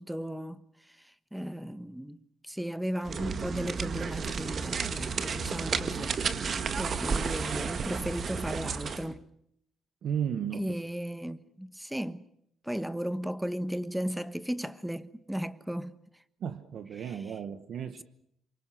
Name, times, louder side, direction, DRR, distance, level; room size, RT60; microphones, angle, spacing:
voice 1, 0.0-6.2 6.8-9.3 10.5-12.3 12.6-15.9 17.0-17.2, equal, 5° right, 1.3 m, -36 dB
sound 1, 3.0-9.1, right 5 dB, 50° right, 1.8 m, -32 dB
voice 2, 10.0-10.8 16.4-18.0, right 8 dB, 65° right, 1.5 m, -34 dB
27.5 x 24.5 x 6.4 m
cardioid pair, 90°, 0 cm